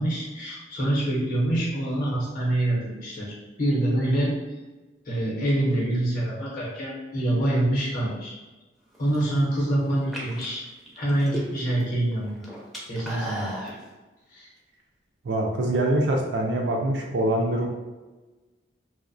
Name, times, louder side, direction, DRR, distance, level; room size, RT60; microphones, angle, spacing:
voice 1, 0.0-4.4 5.0-8.4 9.0-10.6 11.0-12.5 12.9-13.6 14.3-14.5, right 1 dB, 50° left, -5 dB, 0.7 m, -26 dB
sound 1, 8.9-9.4 10.0-11.8 12.1-13.8, right 1 dB, ahead, 0.4 m, -35 dB
voice 2, 15.2-17.7, right 1 dB, 70° right, 1 dB, 0.4 m, -24 dB
2.6 x 2.0 x 2.6 m, 1.2 s
head